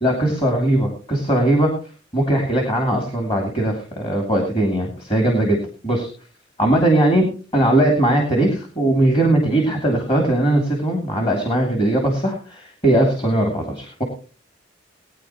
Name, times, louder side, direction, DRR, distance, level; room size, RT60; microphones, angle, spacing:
voice 1, 0.0-1.7 2.1-5.6 5.8-6.1 6.6-14.0, right 1 dB, 30° left, 1 dB, 2.7 m, -19 dB
20.0 x 9.7 x 3.0 m, 0.36 s
head